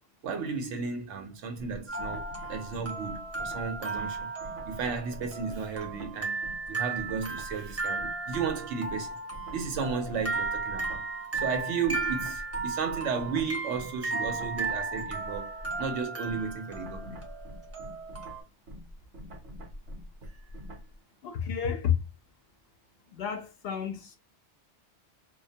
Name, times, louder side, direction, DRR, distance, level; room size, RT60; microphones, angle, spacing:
voice 1, 0.2-4.3 4.6-6.4 6.7-9.2 9.5-11.0 11.3-17.2, right 5 dB, 90° right, 1.0 m, -34 dB
sound 1, 1.6-6.7 7.0-21.0, equal, 70° right, 1.0 m, -45 dB
sound 2, 1.9-18.4, right 3 dB, 20° right, 0.5 m, -35 dB
voice 2, 21.2-22.0 23.1-24.2, left 8 dB, 65° left, 0.8 m, -30 dB
2.4 x 2.1 x 2.7 m
omnidirectional pair, 1.2 m